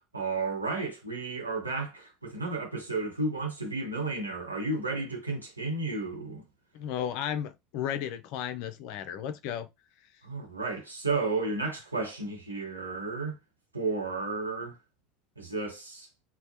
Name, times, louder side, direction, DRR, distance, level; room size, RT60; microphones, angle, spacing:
voice 1, 0.1-6.4 10.2-13.4 13.7-14.8 15.4-16.1, right 3 dB, 85° right, 1.0 m, -32 dB
voice 2, 6.7-9.7, left 9 dB, 55° left, 0.4 m, -34 dB
3.1 x 2.1 x 2.7 m
figure-of-eight pair, 70°, 0 cm